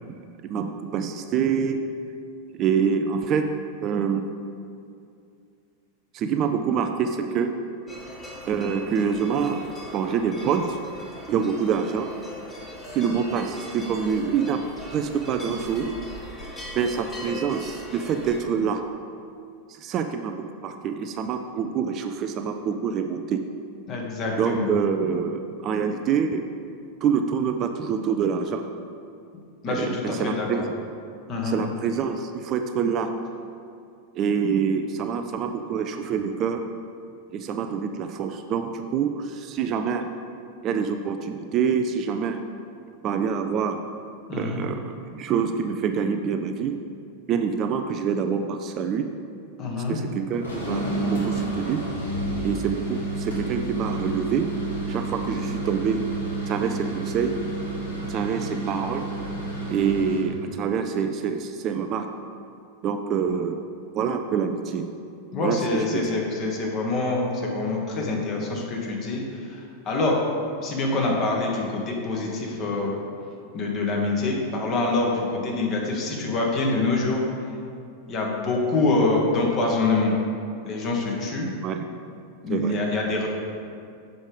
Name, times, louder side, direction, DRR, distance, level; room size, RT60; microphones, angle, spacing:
voice 1, 0.4-1.8 2.6-3.5 3.8-4.2 6.1-7.5 8.5-9.6 9.9-10.8 11.3-12.1 12.9-14.6 14.9-15.9 16.8-18.8 19.8-20.4 20.6-23.4 24.4-26.5 27.0-28.6 29.7-30.7 31.4-33.1 34.2-36.6 37.3-40.1 40.6-42.4 43.0-43.8 44.3-46.8 47.3-49.1 49.9-50.8 51.1-51.9 52.4-54.5 54.9-56.0 56.5-57.4 58.1-59.1 59.7-62.1 62.8-63.6 63.9-64.8 65.4-66.0 81.6-81.8 82.5-82.8, right 6 dB, 35° right, 6 dB, 0.4 m, -26 dB
sound 1, 7.9-18.4, left 1 dB, 20° left, 1.6 m, -40 dB
voice 2, 23.9-24.7 29.6-30.6 31.3-31.6 44.3-44.6 49.6-50.0 65.3-69.6 69.8-70.2 70.6-73.0 73.5-77.2 78.1-80.1 80.6-81.5 82.4-83.3, left 2 dB, 35° left, -1 dB, 1.5 m, -25 dB
sound 2, 50.3-60.3, right 2 dB, 75° left, 1.6 m, -30 dB
7.1 x 5.0 x 5.1 m, 2.4 s
figure-of-eight pair, 90°, 0 cm